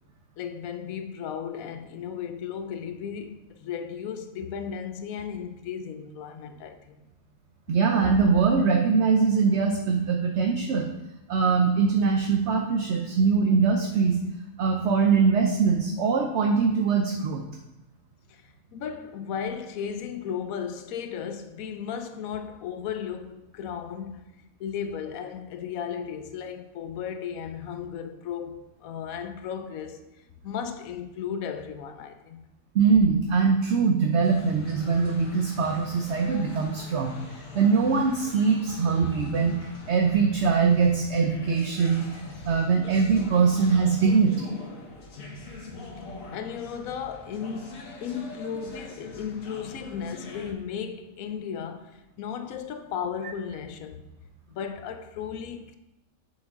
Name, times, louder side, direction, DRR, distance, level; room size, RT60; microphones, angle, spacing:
voice 1, 0.4-7.0 18.3-24.3 24.6-30.0 30.4-32.4 46.3-54.0 54.5-55.8, left 7 dB, 90° left, 1.1 m, -35 dB
voice 2, 7.7-10.9 11.3-14.2 14.6-17.4 32.7-37.1 37.5-42.1 42.4-44.5, right 5 dB, 60° right, 0.9 m, -22 dB
sound 1, 34.2-50.5, left 2 dB, 70° left, 1.5 m, -43 dB
7.5 x 6.2 x 3.7 m
omnidirectional pair, 1.4 m